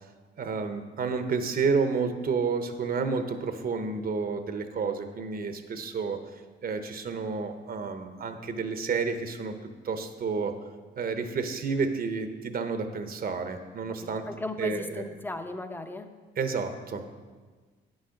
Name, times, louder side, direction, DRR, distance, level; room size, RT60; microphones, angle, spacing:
voice 1, 0.4-6.2 6.6-9.6 9.8-10.5 11.0-14.3 14.6-15.0 16.4-17.1, right 5 dB, 50° right, 7 dB, 0.9 m, -30 dB
voice 2, 14.0-16.1, left 2 dB, 10° left, 7 dB, 0.8 m, -36 dB
9.1 x 6.4 x 5.8 m, 1.4 s
cardioid pair, 90°, 20 cm